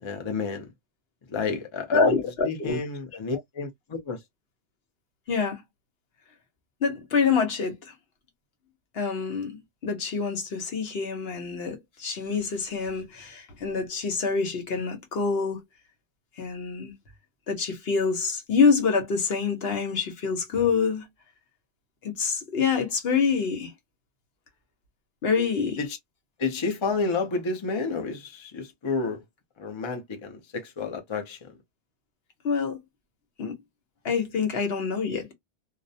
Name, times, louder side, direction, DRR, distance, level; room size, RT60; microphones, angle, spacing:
voice 1, 0.0-0.7 1.3-2.1 2.4-4.2 25.8-26.0 26.4-29.2 29.6-31.5, left 4 dB, 35° left, 0.5 m, -30 dB
voice 2, 1.9-2.8 5.3-5.6 6.8-7.8 8.9-15.6 16.4-16.9 17.5-21.1 22.0-23.7 25.2-25.8 32.4-32.8 33.4-33.5 34.0-35.3, left 5 dB, 65° left, 1.0 m, -26 dB
2.3 x 2.1 x 2.6 m
omnidirectional pair, 1.1 m